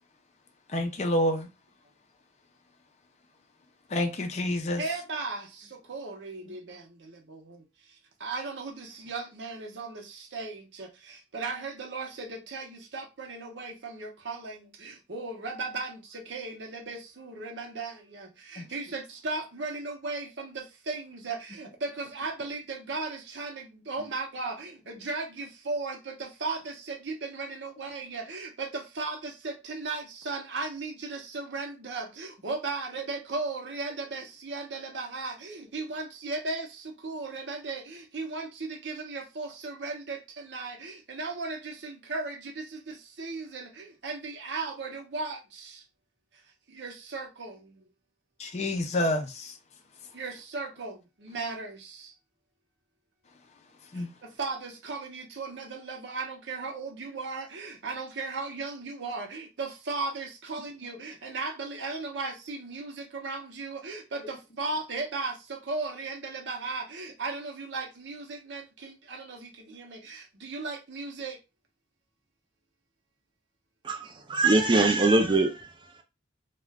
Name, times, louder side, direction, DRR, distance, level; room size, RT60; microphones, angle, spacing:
voice 1, 0.7-1.5 3.9-4.8 6.4-6.5 18.6-18.7 48.4-49.6 53.9-54.1, left 1 dB, 35° left, 0.4 m, -28 dB
voice 2, 4.8-45.8 46.3-46.4 46.7-47.9 50.1-52.1 53.9-71.4, right 3 dB, 70° right, 0.7 m, -36 dB
voice 3, 73.8-75.7, right 2 dB, 25° right, 0.4 m, -22 dB
2.4 x 2.2 x 3.4 m
head